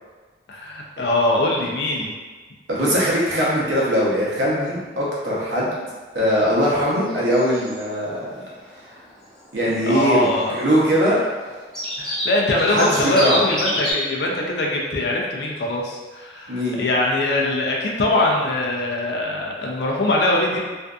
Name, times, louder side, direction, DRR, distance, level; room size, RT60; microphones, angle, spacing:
voice 1, 0.5-2.1 9.9-10.5 12.0-20.6, left 2 dB, 70° left, -2 dB, 0.4 m, -22 dB
voice 2, 2.7-5.7 6.1-8.4 9.5-11.2 12.7-13.4 16.5-16.8, equal, 85° right, -6 dB, 0.8 m, -21 dB
sound 1, 7.0-7.8 8.1-8.2 8.4-8.6 8.9-9.0 9.2-9.9 10.2-11.0 11.4-11.5 11.7-13.9, equal, 5° left, 0.6 m, -27 dB
2.5 x 2.4 x 2.3 m, 1.4 s
head